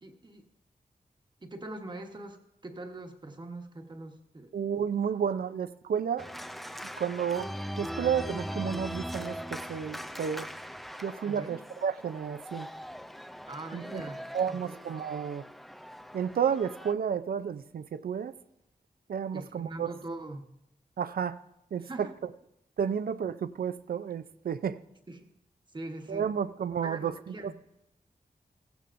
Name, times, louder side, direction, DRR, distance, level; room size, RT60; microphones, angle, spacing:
voice 1, 0.0-0.5 1.4-4.5 11.2-11.6 13.5-14.2 14.5-14.9 19.3-20.5 21.8-22.1 25.1-25.3 25.7-26.3 26.8-27.5, right 2 dB, 30° right, 4 dB, 1.1 m, -42 dB
voice 2, 4.5-6.3 7.0-7.5 7.8-10.5 11.0-12.7 13.7-14.0 14.3-15.5 16.1-18.3 19.1-19.9 21.0-21.4 21.7-22.1 22.8-24.8 26.1-27.5, right 7 dB, 80° right, 14 dB, 0.4 m, -31 dB
Organ, 6.2-16.9, equal, ahead, 0.3 m, -40 dB
16.0 x 15.0 x 2.6 m, 0.84 s
wide cardioid pair, 130°, 15 cm